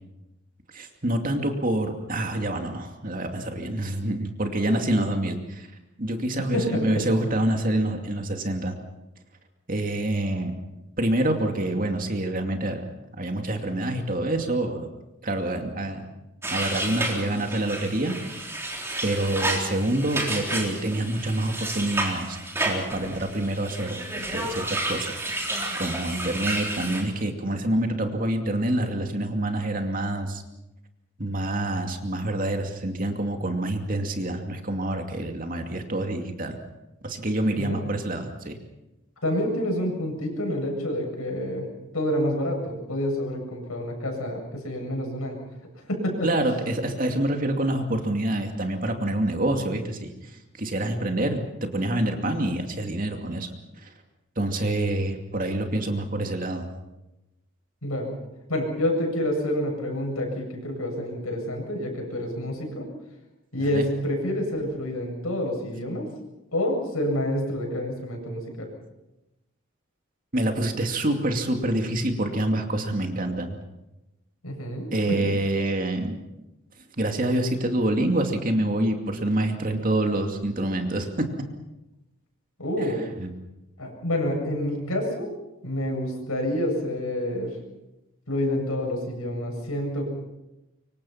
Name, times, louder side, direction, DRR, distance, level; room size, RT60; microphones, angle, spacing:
voice 1, 0.7-5.7 6.0-8.7 9.7-10.5 11.0-12.9 13.2-14.9 15.2-16.1 16.5-18.6 19.0-25.2 25.8-30.4 31.2-36.6 37.0-38.6 46.2-50.1 50.6-53.5 53.8-53.9 54.4-56.7 63.7-63.8 70.3-73.6 74.9-76.2 77.0-81.3 82.8-83.3, right 1 dB, 40° right, 4 dB, 2.5 m, -27 dB
voice 2, 6.5-7.1 37.6-37.9 39.2-41.7 41.9-45.4 45.9-46.3 57.8-58.1 58.5-62.9 63.5-66.1 66.5-68.7 74.4-75.2 82.6-83.0 83.8-85.3 85.6-87.5 88.3-90.1, left 1 dB, 85° left, 1 dB, 7.9 m, -28 dB
sound 1, 16.4-27.0, right 2 dB, 10° right, 3.8 m, -31 dB
25.5 x 23.5 x 5.9 m, 0.97 s
head